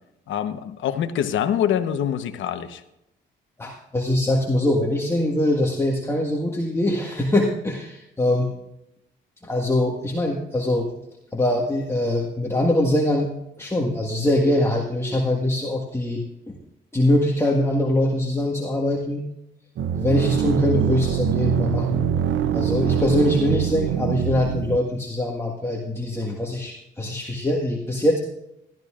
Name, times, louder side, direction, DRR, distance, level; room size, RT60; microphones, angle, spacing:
voice 1, 0.3-2.8, left 9 dB, 75° left, 9 dB, 1.1 m, -25 dB
voice 2, 3.6-8.5 9.4-10.9 11.3-13.3 13.6-16.6 16.9-19.2 19.9-22.0 22.5-28.2, left 1 dB, 15° left, -2 dB, 1.7 m, -23 dB
sound 1, 19.8-24.8, right 8 dB, 75° right, 0.7 m, -23 dB
18.0 x 12.5 x 2.5 m, 0.88 s
cardioid pair, 90°, 20 cm